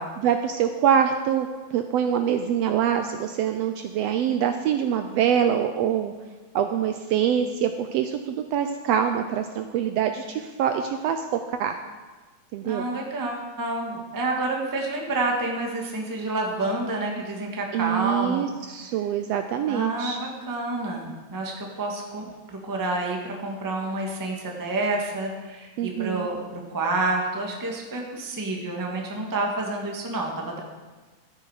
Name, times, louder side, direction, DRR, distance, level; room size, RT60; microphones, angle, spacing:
voice 1, 0.2-6.1 6.5-11.2 11.5-11.8 12.5-12.9 17.7-20.2 25.8-26.3, right 9 dB, 80° right, 7 dB, 1.5 m, -25 dB
voice 2, 12.6-18.5 19.7-30.6, right 2 dB, 15° right, 0 dB, 0.7 m, -29 dB
13.0 x 9.6 x 4.9 m, 1.3 s
omnidirectional pair, 3.3 m